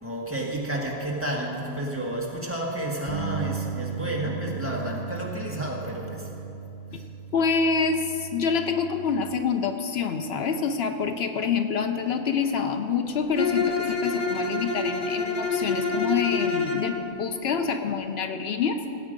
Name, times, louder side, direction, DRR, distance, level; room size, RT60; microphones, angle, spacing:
voice 1, 0.0-6.3 6.9-7.0, right 1 dB, 10° right, -3 dB, 1.7 m, -31 dB
Bass guitar, 3.1-9.3, right 7 dB, 50° right, 1.2 m, -36 dB
voice 2, 7.3-18.8, left 5 dB, 75° left, 7 dB, 0.9 m, -27 dB
Bowed string instrument, 13.4-16.9, left 4 dB, 35° left, 1.3 m, -27 dB
17.0 x 8.4 x 5.1 m, 2.8 s
omnidirectional pair, 1.1 m